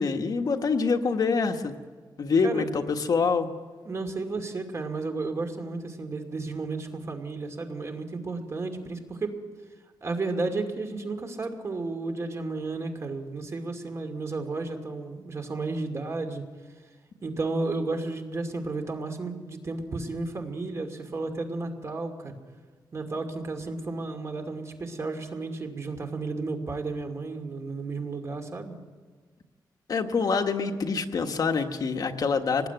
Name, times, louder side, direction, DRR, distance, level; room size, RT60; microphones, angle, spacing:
voice 1, 0.0-1.7 2.2-3.5 29.9-32.7, left 5 dB, 55° left, 5 dB, 1.5 m, -25 dB
voice 2, 3.8-9.4 10.0-16.5 17.2-22.4 22.9-28.8, right 3 dB, 40° right, 5 dB, 2.5 m, -33 dB
24.5 x 19.0 x 9.2 m, 1.4 s
wide cardioid pair, 140°, 8 cm